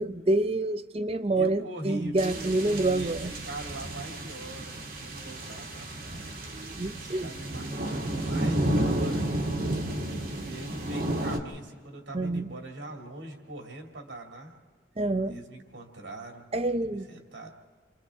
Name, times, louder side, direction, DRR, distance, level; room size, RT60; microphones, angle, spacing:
voice 1, 0.0-3.3 6.5-7.3 12.1-12.5 15.0-15.4 16.5-17.1, right 2 dB, 30° right, 11 dB, 0.6 m, -27 dB
voice 2, 1.4-3.2 3.5-6.5 6.8-9.3 10.4-14.6 15.3-16.5 16.8-17.5, right 1 dB, 70° right, 1 dB, 2.6 m, -42 dB
sound 1, 2.2-11.4, right 1 dB, 50° right, 1.8 m, -32 dB
29.0 x 25.5 x 3.6 m, 1.5 s
head